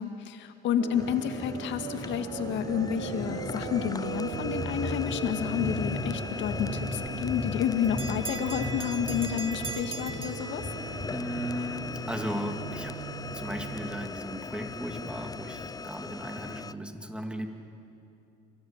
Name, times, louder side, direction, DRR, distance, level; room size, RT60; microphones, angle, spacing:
voice 1, 0.0-10.7, left 8 dB, 60° left, 8 dB, 2.0 m, -30 dB
sound 1, 0.8-14.1, right 17 dB, 75° right, 0.6 m, -40 dB
sound 2, 0.9-16.7, left 4 dB, 15° left, 0.6 m, -37 dB
Bell, 7.3-11.1, right 5 dB, 25° right, 1.4 m, -40 dB
voice 2, 11.1-17.5, equal, 5° right, 4 dB, 2.8 m, -36 dB
29.0 x 25.5 x 7.4 m, 2.7 s
hypercardioid pair, 70°, 21 cm